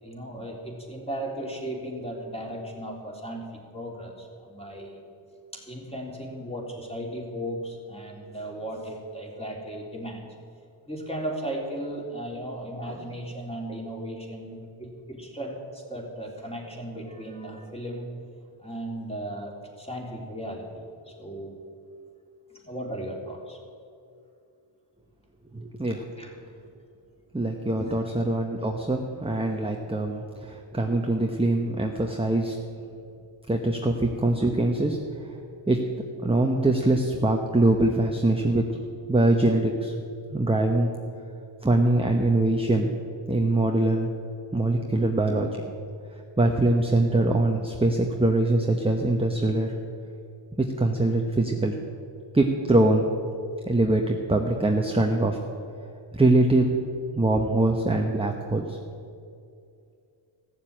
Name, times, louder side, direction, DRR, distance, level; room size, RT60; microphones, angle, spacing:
voice 1, 0.0-5.0 5.5-10.3 10.8-18.1 18.6-21.5 22.6-23.6 26.2-26.3 27.8-28.0, right 1 dB, 10° left, -1 dB, 3.4 m, -36 dB
voice 2, 25.5-26.0 27.3-32.6 33.5-35.4 35.7-35.8 36.2-38.6 39.1-39.9 40.3-40.9 41.6-42.9 43.3-44.1 44.5-45.6 46.4-49.7 50.8-51.7 52.3-53.1 53.6-55.4 56.1-56.7 57.2-58.8, right 2 dB, 10° right, 2 dB, 1.1 m, -23 dB
15.0 x 7.5 x 8.7 m, 2.4 s
cardioid pair, 70°, 49 cm